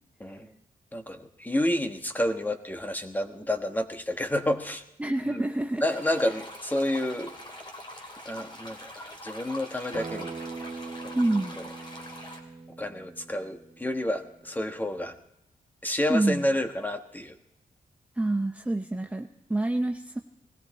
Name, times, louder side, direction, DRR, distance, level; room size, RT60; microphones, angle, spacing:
voice 1, 0.9-4.8 5.2-5.4 5.8-7.3 8.2-10.3 11.0-11.2 12.8-15.1 15.8-17.4, left 1 dB, 10° left, 6 dB, 1.2 m, -29 dB
voice 2, 5.0-5.9 11.1-11.6 16.1-16.4 18.2-20.2, right 2 dB, 10° right, 4 dB, 0.7 m, -27 dB
sound 1, 5.9-12.4, left 1 dB, 35° left, 2.9 m, -43 dB
Acoustic guitar, 9.9-15.1, right 4 dB, 70° right, 1.8 m, -42 dB
19.5 x 17.0 x 4.2 m, 0.83 s
wide cardioid pair, 120°, 14 cm